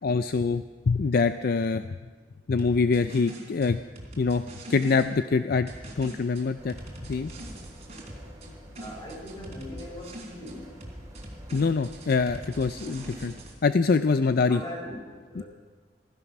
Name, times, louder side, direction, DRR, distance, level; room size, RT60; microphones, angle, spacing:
voice 1, 0.0-1.9 2.5-3.8 4.2-4.4 4.7-5.7 6.0-6.7 7.1-7.3 11.5-13.3 13.6-14.6 15.4-15.5, left 4 dB, 55° left, 11 dB, 0.4 m, -24 dB
sound 1, 2.6-5.1 5.7-8.5 8.8-10.6 10.8-13.5, right 1 dB, 35° right, 3.5 m, -42 dB
sound 2, 6.5-13.4, equal, 15° right, 4.6 m, -48 dB
voice 2, 8.8-10.7 14.5-15.4, left 1 dB, 25° left, 0 dB, 4.2 m, -40 dB
15.5 x 15.5 x 6.0 m, 1.5 s
head